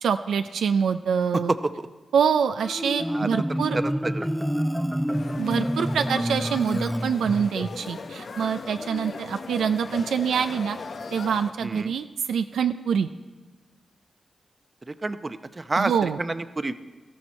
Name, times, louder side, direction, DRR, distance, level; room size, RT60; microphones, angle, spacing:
voice 1, 0.0-1.5 2.1-3.8 5.4-10.8 11.1-13.1 15.8-16.2, right 7 dB, 90° right, 8 dB, 0.4 m, -25 dB
voice 2, 1.3-1.9 3.1-3.3 3.7-4.3 11.6-11.9 14.9-16.7, right 2 dB, 40° right, 11 dB, 0.7 m, -29 dB
Marimba xylophone, 2.6-7.8, equal, 5° right, 0.5 m, -28 dB
sound 1, 5.1-11.5, left 4 dB, 70° left, 0.7 m, -38 dB
17.5 x 13.5 x 4.3 m, 1.3 s
cardioid pair, 45°, 0 cm